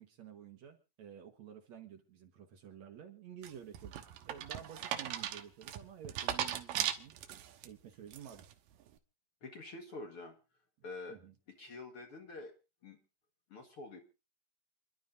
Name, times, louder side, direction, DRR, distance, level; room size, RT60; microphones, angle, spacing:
voice 1, 0.0-7.1 7.6-8.4 11.1-11.3, right 9 dB, 60° right, 6 dB, 2.5 m, -51 dB
sound 1, 3.4-7.7 8.1-8.5, right 10 dB, 90° right, 2.8 m, -38 dB
voice 2, 9.4-10.4 10.8-11.2 11.6-12.5 12.8-13.0 13.5-14.0, left 3 dB, 50° left, 4 dB, 2.1 m, -47 dB
28.5 x 11.5 x 2.6 m, 0.31 s
omnidirectional pair, 3.9 m